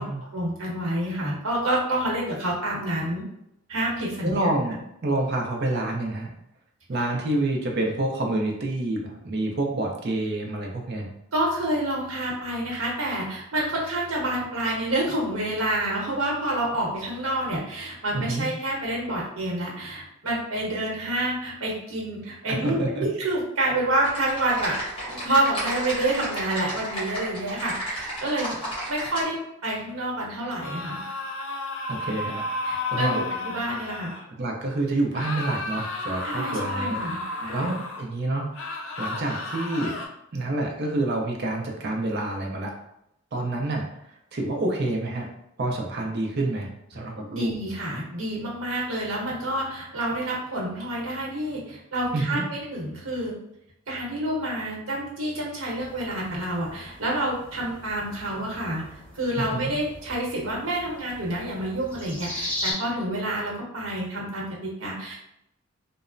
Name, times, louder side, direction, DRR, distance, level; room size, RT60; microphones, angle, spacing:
voice 1, 0.3-3.2 3.7-4.5 11.3-24.8 25.0-31.0 32.6-34.1 36.2-37.7 47.3-53.3 53.9-58.8 59.1-65.1, right 1 dB, 80° right, -3 dB, 0.9 m, -28 dB
voice 2, 4.2-6.3 6.9-11.1 18.1-18.5 22.5-23.1 31.9-32.4 32.9-33.2 34.4-38.5 39.0-39.9 40.3-42.7 43.3-43.9 44.3-45.3 45.6-47.5 52.1-52.4 59.4-59.7, right 2 dB, 50° right, 0 dB, 0.5 m, -28 dB
Typing, 24.0-29.2, right 1 dB, 25° left, 1.0 m, -33 dB
sound 1, 30.6-34.3 35.1-38.1 38.5-40.1, left 2 dB, 65° left, 0.4 m, -32 dB
sound 2, 55.8-62.7, left 1 dB, 5° left, 0.7 m, -39 dB
3.0 x 2.0 x 2.4 m, 0.80 s
head